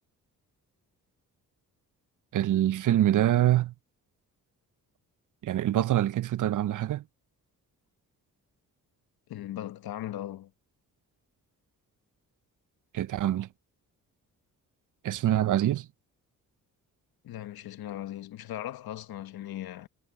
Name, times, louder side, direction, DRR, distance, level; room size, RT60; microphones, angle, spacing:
voice 1, 2.3-3.7 5.4-7.0 12.9-13.5 15.0-15.9, right 12 dB, 60° right, 0.6 m, -25 dB
voice 2, 9.3-10.5 17.2-19.9, left 12 dB, 80° left, 1.2 m, -38 dB
cardioid pair, 70°, 36 cm